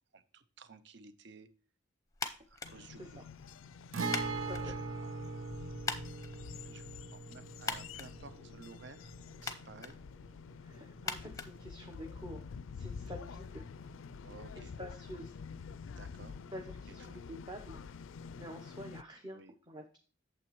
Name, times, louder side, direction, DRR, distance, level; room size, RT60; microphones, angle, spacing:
voice 1, 0.1-1.5 2.5-3.2 4.5-4.7 6.6-6.8 7.1-9.2 9.4-10.0 14.2-14.7 15.9-16.4 17.1-17.2 19.3-19.5, right 4 dB, 55° right, 12 dB, 0.6 m, -54 dB
sound 1, 2.1-12.3, left 5 dB, 15° left, 0.7 m, -45 dB
sound 2, 2.6-19.0, left 5 dB, 70° left, 0.4 m, -48 dB
Guitar, 3.9-11.5 11.8-11.9 13.9-14.1, right 4 dB, 90° right, 0.9 m, -41 dB
voice 2, 4.3-4.7 10.6-13.7 14.8-15.4 16.5-17.8 18.4-19.4 19.7-20.0, equal, 20° right, 3 dB, 0.8 m, -47 dB
8.7 x 7.2 x 3.0 m, 0.38 s
head